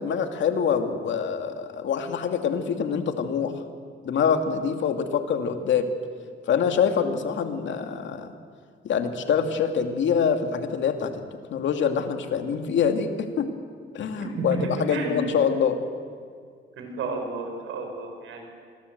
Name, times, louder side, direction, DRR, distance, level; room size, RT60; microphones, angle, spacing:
voice 1, 0.0-3.5 4.0-5.9 6.5-8.3 8.8-11.2 11.5-13.5 13.9-15.8, left 7 dB, 70° left, 6 dB, 2.5 m, -25 dB
voice 2, 14.2-15.1 16.8-18.4, right 3 dB, 80° right, 3 dB, 6.3 m, -31 dB
26.0 x 22.0 x 8.0 m, 2.1 s
cardioid pair, 90°, 20 cm